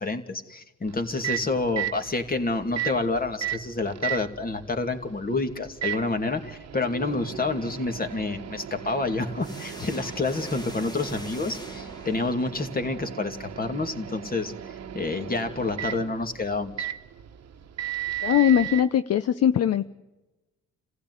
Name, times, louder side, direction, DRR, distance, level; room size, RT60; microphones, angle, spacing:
voice 1, 0.0-14.5 14.9-16.9, left 3 dB, 30° left, 6 dB, 2.6 m, -28 dB
Microwave oven, 0.8-18.8, right 11 dB, 55° right, 1.2 m, -36 dB
sound 1, 9.4-12.8, equal, 15° left, 2.1 m, -43 dB
voice 2, 18.2-19.9, left 10 dB, 55° left, 12 dB, 0.8 m, -21 dB
28.5 x 15.5 x 9.7 m, 1.1 s
cardioid pair, 90°, 30 cm